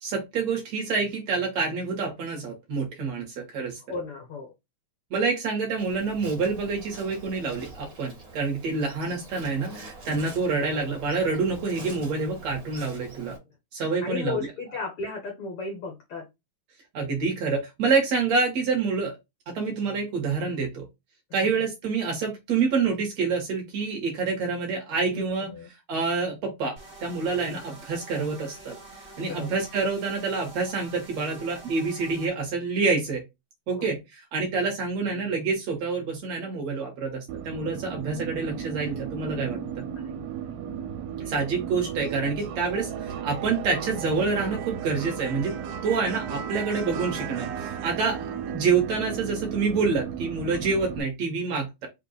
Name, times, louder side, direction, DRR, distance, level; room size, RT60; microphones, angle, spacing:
voice 1, 0.0-4.0 5.1-13.4 13.7-14.5 16.9-19.1 19.5-20.9 21.3-25.5 25.9-28.8 29.2-33.2 33.7-39.8 41.3-45.5 45.8-51.9, right 4 dB, 60° right, 1 dB, 2.1 m, -27 dB
voice 2, 3.9-4.5 14.0-16.3 21.4-21.7 25.1-25.7 29.2-29.6 33.8-33.9 39.9-40.1 41.2-41.3 50.5-50.6, left 4 dB, 80° left, 2 dB, 1.2 m, -35 dB
Insect, 5.8-13.4, right 2 dB, 40° right, 1.4 m, -45 dB
sound 1, 26.8-32.3, right 2 dB, 25° right, 1.0 m, -46 dB
sound 2, 37.3-51.0, right 8 dB, 85° right, 2.4 m, -35 dB
5.6 x 2.4 x 3.9 m, 0.21 s
omnidirectional pair, 4.0 m